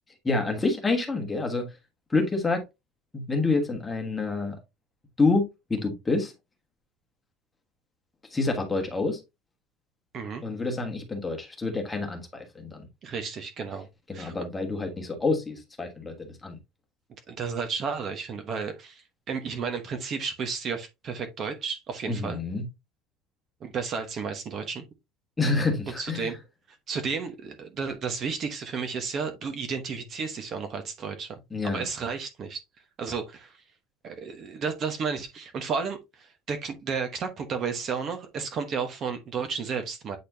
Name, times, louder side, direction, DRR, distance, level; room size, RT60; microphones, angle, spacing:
voice 1, 0.2-1.7 2.1-2.6 3.1-4.6 5.2-6.3 8.3-9.2 10.4-12.9 14.1-16.6 22.1-22.7 25.4-26.3 31.5-31.8, left 3 dB, 10° left, 1.4 m, -27 dB
voice 2, 13.0-13.9 14.1-14.3 17.3-22.4 23.6-24.8 26.0-26.3 26.9-31.4 31.7-32.6 33.0-33.6 34.0-40.2, right 5 dB, 30° right, 1.0 m, -32 dB
8.5 x 4.2 x 2.7 m
cardioid pair, 175°, 0 cm